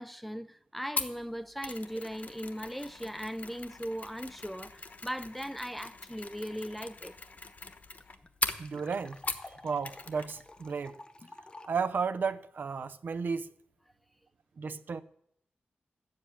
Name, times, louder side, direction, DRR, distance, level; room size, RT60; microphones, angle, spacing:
voice 1, 0.0-7.2, equal, ahead, 0.5 m, -38 dB
Mechanisms, 1.0-9.6 9.8-10.3 10.6-10.7, left 4 dB, 45° left, 1.2 m, -40 dB
sound 1, 7.1-7.2 7.4-7.5 7.7-11.8, left 2 dB, 25° left, 0.9 m, -51 dB
voice 2, 8.6-9.2 9.6-10.9 11.7-13.5 14.6-15.0, right 5 dB, 60° right, 0.7 m, -33 dB
12.5 x 7.8 x 8.8 m
wide cardioid pair, 100°, 4 cm